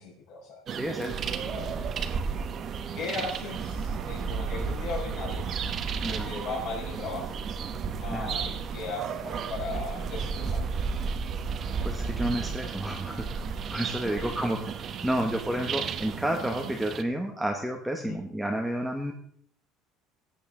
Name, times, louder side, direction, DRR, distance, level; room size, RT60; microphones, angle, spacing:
voice 1, 0.0-0.6 1.2-1.7 2.9-5.5 6.1-7.4 8.0-11.0 14.0-14.5 18.0-18.2, left 3 dB, 55° left, -3 dB, 5.4 m, -37 dB
sound 1, 0.7-17.0, right 5 dB, 35° right, 0.9 m, -33 dB
voice 2, 0.8-1.2 6.0-6.3 8.1-8.3 11.8-13.2 13.7-14.6 15.0-19.1, right 1 dB, ahead, 2 dB, 0.9 m, -30 dB
17.0 x 8.6 x 3.6 m, 0.62 s
cardioid pair, 160°, 0 cm